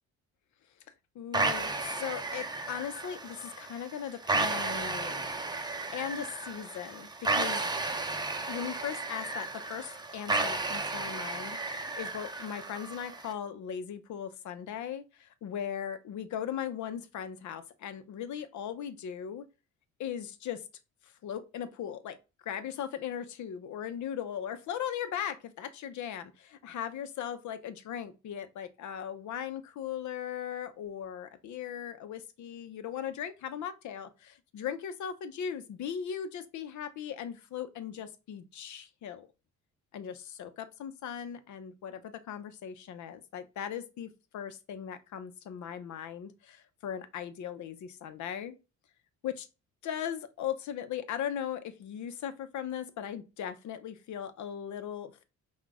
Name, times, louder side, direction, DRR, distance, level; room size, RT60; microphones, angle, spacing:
voice 1, 1.1-5.3 5.9-7.7 8.5-19.4 20.0-20.6 21.0-39.3 39.9-48.6 49.2-49.5 49.8-55.2, left 9 dB, 70° left, 0.7 m, -38 dB
sound 1, 1.3-13.3, right 3 dB, 15° right, 0.7 m, -33 dB
5.8 x 2.4 x 3.6 m
cardioid pair, 90°, 30 cm